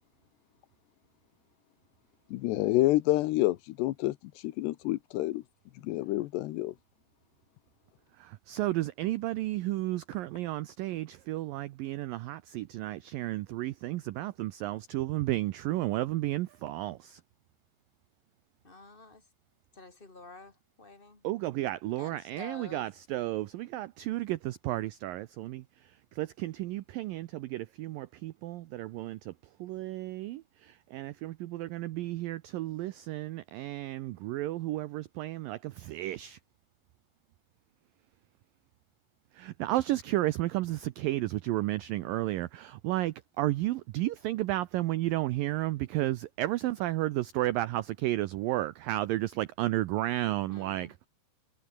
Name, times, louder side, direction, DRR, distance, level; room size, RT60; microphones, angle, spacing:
voice 1, 2.3-4.2 4.4-5.4 5.8-6.7, left 17 dB, 85° left, 2.9 m, -28 dB
voice 2, 8.5-17.2 21.2-25.6 26.2-29.3 29.6-30.4 30.9-36.4 39.4-50.9, right 16 dB, 90° right, 2.0 m, -32 dB
voice 3, 18.6-19.2 19.7-21.2 21.9-22.9 50.2-50.9, left 3 dB, 15° left, 1.8 m, -49 dB
omnidirectional pair, 5.0 m